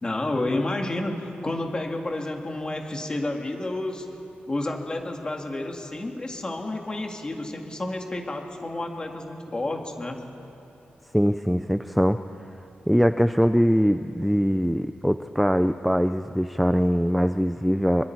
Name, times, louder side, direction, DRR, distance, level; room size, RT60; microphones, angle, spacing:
voice 1, 0.0-4.1 4.5-10.2, left 2 dB, 25° left, 2 dB, 2.1 m, -30 dB
voice 2, 11.1-12.2 12.9-18.0, equal, ahead, 9 dB, 0.4 m, -22 dB
26.0 x 24.5 x 4.7 m, 2.9 s
wide cardioid pair, 165°, 4 cm